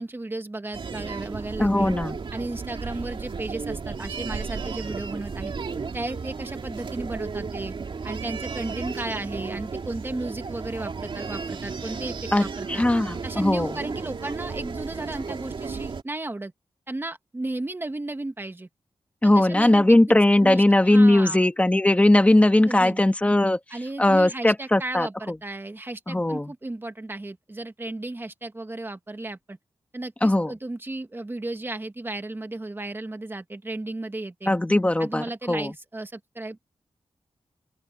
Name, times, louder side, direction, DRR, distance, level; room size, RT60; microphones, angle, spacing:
voice 1, 0.0-1.9 2.3-5.5 5.9-7.8 8.0-12.9 13.2-16.5 16.9-18.7 19.2-21.4 22.6-23.0 23.7-29.6 29.9-34.5 35.0-36.7, right 2 dB, 20° right, 1.8 m, -34 dB
sound 1, 0.7-16.0, right 5 dB, 60° right, 2.5 m, -34 dB
voice 2, 1.6-2.2 12.3-13.7 19.2-23.6 24.0-25.1 26.1-26.5 30.2-30.5 34.5-35.7, left 1 dB, 15° left, 1.7 m, -19 dB
open air
wide cardioid pair, 120°, 10 cm